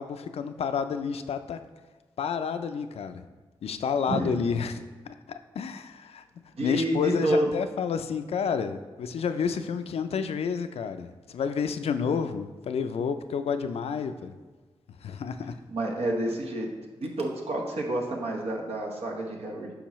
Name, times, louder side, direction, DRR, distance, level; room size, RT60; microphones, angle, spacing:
voice 1, 0.0-1.6 2.2-3.2 3.6-6.2 6.6-14.3 15.0-15.6, left 6 dB, 85° left, 9 dB, 0.4 m, -30 dB
voice 2, 6.6-7.5 15.7-16.7 17.0-19.7, right 1 dB, 85° right, 0 dB, 1.1 m, -29 dB
8.6 x 5.3 x 3.1 m, 1.3 s
cardioid pair, 60°, 10 cm